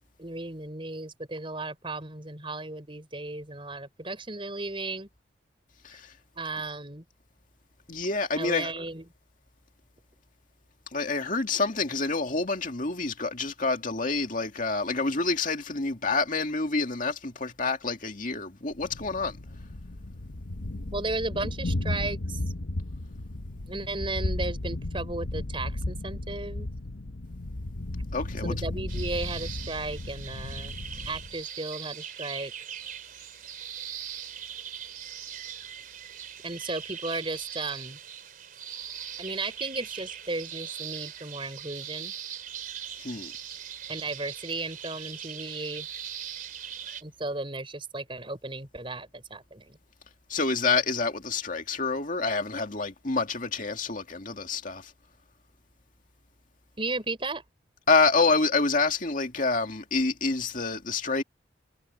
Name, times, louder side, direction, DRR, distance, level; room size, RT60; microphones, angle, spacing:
voice 1, 0.2-5.1 6.3-7.0 8.3-9.0 20.9-22.4 23.7-26.7 28.4-30.8 31.0-32.5 36.4-38.0 39.2-42.1 43.9-45.9 47.0-49.8 56.8-57.4, right 2 dB, 30° right, 5.0 m, -35 dB
voice 2, 7.9-8.7 10.9-19.4 28.1-28.5 43.0-43.3 50.3-54.9 57.9-61.2, left 4 dB, 45° left, 2.3 m, -27 dB
Thunder, 18.8-31.4, left 1 dB, 70° left, 1.1 m, -34 dB
sound 1, 28.9-47.0, right 9 dB, 45° right, 3.9 m, -40 dB
head